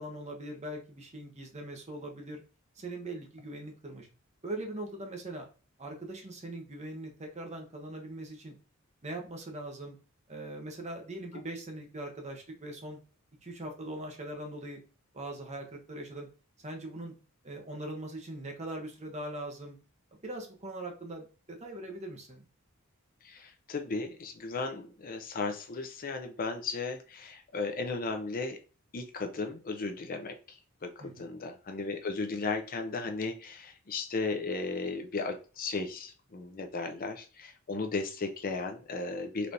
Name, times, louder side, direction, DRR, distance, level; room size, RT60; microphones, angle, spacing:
voice 1, 0.0-2.4 2.8-4.1 4.4-5.5 5.8-8.5 9.0-10.0 10.3-13.0 13.4-14.8 15.1-16.3 16.6-17.1 17.4-19.8 20.1-22.5 31.0-31.3, right 1 dB, 35° right, 2 dB, 1.1 m, -41 dB
voice 2, 23.2-28.6 28.9-39.5, left 3 dB, 40° left, 6 dB, 0.6 m, -35 dB
4.1 x 3.3 x 2.6 m, 0.36 s
head